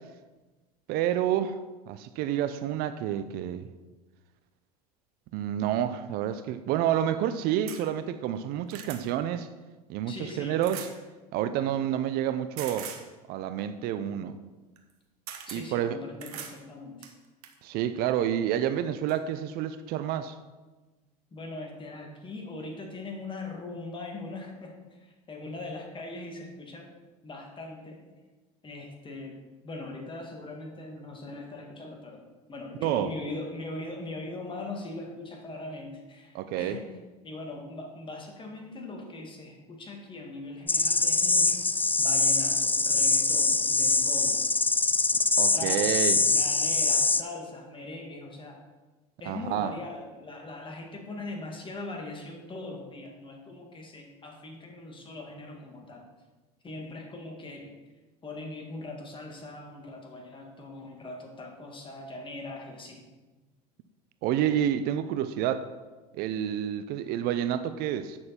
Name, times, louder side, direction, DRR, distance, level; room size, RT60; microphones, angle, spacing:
voice 1, 0.9-1.6 1.9-3.7 5.3-9.5 9.9-10.9 11.3-12.9 13.3-14.3 15.5-16.0 17.6-20.4 32.8-33.1 36.3-36.8 45.4-46.2 49.3-49.7 64.2-65.7 66.1-68.2, right 10 dB, 50° right, 12 dB, 0.6 m, -29 dB
sound 1, 7.7-7.8 8.4-9.0 10.6-10.9 12.6-13.0 14.8-14.9 15.3-15.6 16.2-16.6 17.0-17.6 18.6-18.7 19.1-19.2, right 9 dB, 70° right, 1.2 m, -41 dB
voice 2, 10.1-10.6 15.5-17.1 21.3-26.9 27.2-28.0 28.6-29.4 29.6-32.2 32.5-36.9 37.2-44.5 45.5-45.9 46.2-48.6 49.2-56.1 56.6-57.7 58.2-63.0, left 2 dB, 25° left, 2 dB, 1.9 m, -40 dB
sound 2, 40.7-47.2, left 3 dB, 10° left, 0.4 m, -24 dB
8.8 x 6.4 x 4.3 m, 1.2 s
hypercardioid pair, 85°, 20 cm